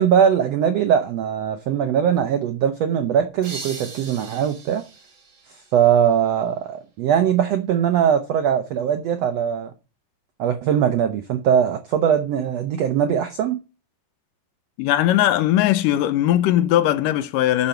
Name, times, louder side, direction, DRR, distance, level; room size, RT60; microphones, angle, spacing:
voice 1, 0.0-4.8 5.7-9.7 10.4-13.6, right 8 dB, 80° right, 1.4 m, -20 dB
sound 1, 3.4-6.2, right 3 dB, 50° right, 0.9 m, -39 dB
voice 2, 14.8-17.7, left 13 dB, 80° left, 2.2 m, -19 dB
8.7 x 6.2 x 7.8 m
omnidirectional pair, 3.9 m